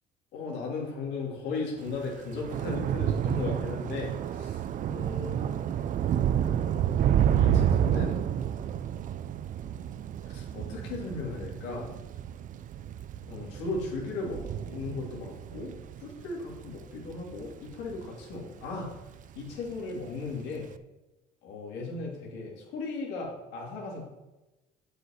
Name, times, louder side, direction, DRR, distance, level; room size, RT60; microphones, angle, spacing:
voice 1, 0.3-5.6 7.3-8.2 10.3-12.0 13.3-14.4 14.7-15.7 16.0-18.9 19.3-20.7 21.4-24.1, left 3 dB, 90° left, -2 dB, 2.7 m, -36 dB
Thunder / Rain, 1.9-18.5 18.8-19.3 19.5-19.7, right 9 dB, 50° right, 0.5 m, -30 dB
7.9 x 5.2 x 7.1 m, 1.1 s
cardioid pair, 110°, 17 cm